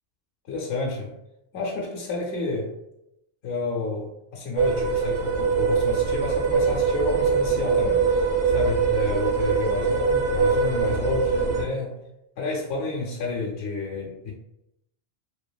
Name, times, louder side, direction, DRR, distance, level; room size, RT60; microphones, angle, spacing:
voice 1, 0.5-1.1 1.5-2.7 3.4-11.9 12.4-14.3, left 3 dB, 80° left, -2 dB, 0.9 m, -30 dB
sound 1, 4.6-11.6, right 5 dB, 85° right, 1.1 m, -23 dB
2.7 x 2.4 x 2.2 m, 0.84 s
omnidirectional pair, 1.2 m